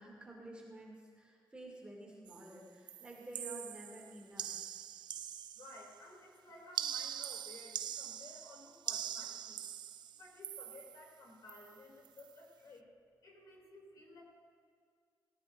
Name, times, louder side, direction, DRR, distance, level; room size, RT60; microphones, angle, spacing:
voice 1, 0.0-4.6, right 1 dB, 15° right, -3 dB, 2.6 m, -51 dB
sound 1, 2.3-2.6 2.9-6.0 6.7-11.1 11.5-11.8 12.0-12.3, right 10 dB, 75° right, 0.4 m, -43 dB
voice 2, 5.5-9.6 10.1-12.8 13.2-14.2, left 2 dB, 55° left, -1 dB, 3.1 m, -55 dB
17.5 x 15.0 x 2.7 m, 2.2 s
wide cardioid pair, 180°, 8 cm